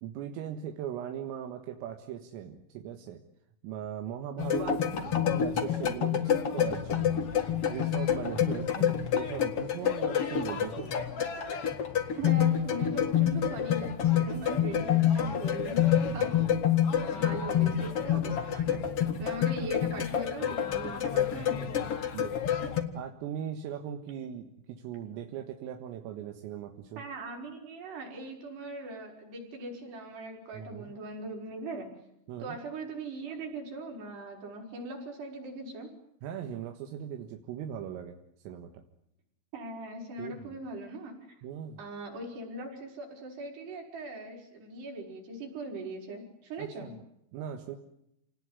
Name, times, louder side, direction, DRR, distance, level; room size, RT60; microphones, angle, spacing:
voice 1, 0.0-3.2 3.6-4.8 5.0-7.2 7.7-10.9 14.6-14.9 16.2-16.5 16.9-17.0 21.7-22.3 22.9-27.0 30.5-30.9 32.3-32.6 36.2-38.2 38.4-38.8 40.2-40.6 41.4-41.8 46.6-46.9 47.3-47.8, right 9 dB, 80° right, 5 dB, 4.2 m, -39 dB
sound 1, 4.4-22.8, left 9 dB, 75° left, 1.3 m, -28 dB
voice 2, 12.2-16.3 17.1-18.8 19.2-21.9 27.0-31.9 32.4-35.9 39.5-41.2 41.8-46.9, right 2 dB, 50° right, 1 dB, 7.2 m, -40 dB
28.0 x 19.5 x 9.7 m, 0.79 s
omnidirectional pair, 5.9 m